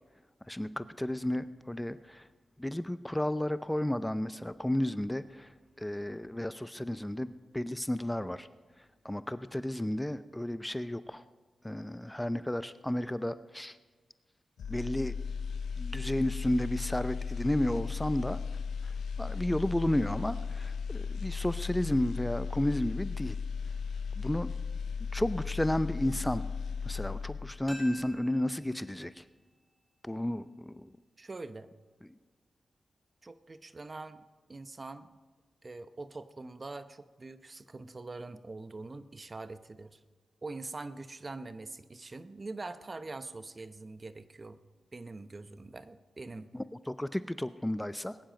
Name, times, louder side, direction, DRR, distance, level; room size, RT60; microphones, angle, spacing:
voice 1, 0.5-2.3 2.6-8.5 9.0-11.2 11.6-13.8 14.7-15.1 15.8-18.4 18.8-23.4 24.2-24.5 25.1-26.4 26.8-29.2 30.0-30.9 46.5-48.2, left 1 dB, 10° left, 14 dB, 0.5 m, -32 dB
sound 1, 14.6-27.7 28.0-28.3, left 5 dB, 85° left, 0.5 m, -36 dB
sound 2, 27.7-30.5 30.7-30.8, equal, 15° right, 4.1 m, -51 dB
voice 2, 31.2-31.7 33.2-35.1 35.6-40.0 40.4-44.6 44.9-46.5, right 3 dB, 40° right, 12 dB, 0.8 m, -44 dB
20.0 x 10.0 x 5.2 m, 1.4 s
cardioid pair, 50°, 0 cm